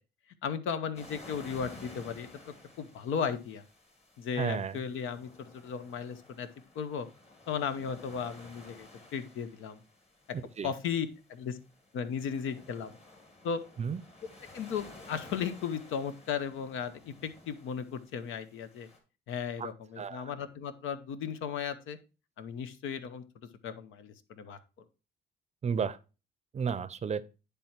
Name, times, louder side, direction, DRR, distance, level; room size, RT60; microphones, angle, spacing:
voice 1, 0.4-3.6 4.2-6.5 6.7-7.1 7.5-9.8 10.6-11.6 11.9-12.9 13.4-13.6 14.5-18.9 19.3-22.0 22.4-24.6, left 7 dB, 85° left, 0.8 m, -36 dB
sound 1, 0.9-19.0, left 2 dB, 30° left, 2.0 m, -54 dB
voice 2, 4.4-4.8 10.6-10.7 13.8-14.0 19.6-19.7 20.0-20.3 25.6-26.0 26.5-27.2, right 6 dB, 35° right, 0.5 m, -32 dB
10.0 x 3.5 x 4.3 m
cardioid pair, 90°, 20 cm